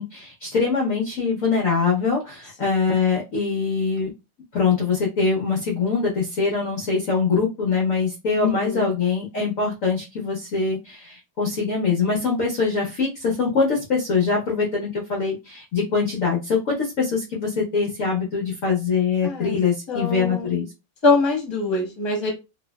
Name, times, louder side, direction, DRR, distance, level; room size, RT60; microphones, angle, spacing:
voice 1, 0.0-4.1 4.5-20.7, left 5 dB, 75° left, -2 dB, 0.7 m, -23 dB
voice 2, 2.6-3.0 8.4-8.9 19.2-19.5 19.9-20.5 21.0-22.3, left 3 dB, 25° left, -2 dB, 0.6 m, -24 dB
3.1 x 2.7 x 2.2 m, 0.26 s
omnidirectional pair, 2.3 m